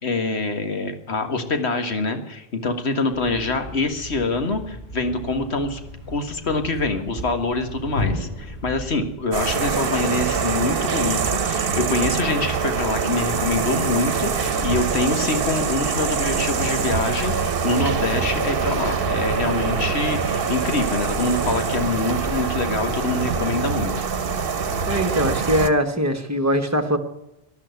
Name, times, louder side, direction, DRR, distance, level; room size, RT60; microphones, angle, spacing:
voice 1, 0.0-5.8 6.1-23.9, left 3 dB, 80° left, 7 dB, 1.9 m, -25 dB
Thump thud, 3.1-9.3, left 1 dB, 45° left, 4.5 m, -34 dB
sound 1, 9.3-25.7, right 5 dB, 60° right, 1.1 m, -24 dB
sound 2, 13.9-23.7, equal, 60° left, 6.7 m, -36 dB
voice 2, 24.9-27.0, equal, 15° right, 7 dB, 1.3 m, -21 dB
13.0 x 11.5 x 9.4 m, 0.93 s
omnidirectional pair, 1.1 m